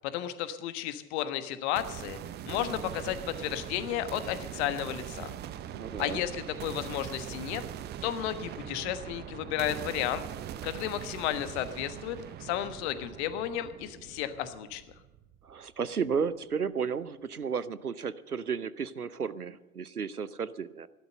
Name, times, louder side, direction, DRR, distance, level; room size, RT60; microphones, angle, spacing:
voice 1, 0.0-2.2 2.5-5.3 6.0-7.6 8.0-10.2 10.6-14.8, left 11 dB, 45° left, 11 dB, 1.4 m, -33 dB
sound 1, 1.8-15.7, right 10 dB, 25° right, 0.7 m, -41 dB
voice 2, 5.7-6.2 15.4-20.9, right 6 dB, 90° right, 17 dB, 0.7 m, -33 dB
14.5 x 12.0 x 6.8 m, 1.0 s
figure-of-eight pair, 85°, 44 cm